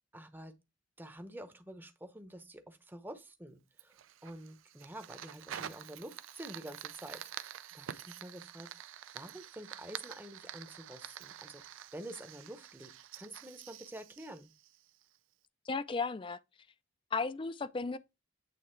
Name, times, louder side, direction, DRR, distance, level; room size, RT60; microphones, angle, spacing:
voice 1, 0.1-0.5 1.0-4.0 4.2-8.7 9.1-11.6 11.9-14.5, right 1 dB, 10° right, 0.7 m, -48 dB
Fire, 3.8-15.2, right 10 dB, 80° right, 0.4 m, -48 dB
voice 2, 15.7-16.4 17.1-18.0, left 4 dB, 25° left, 0.3 m, -34 dB
8.5 x 3.5 x 4.4 m
head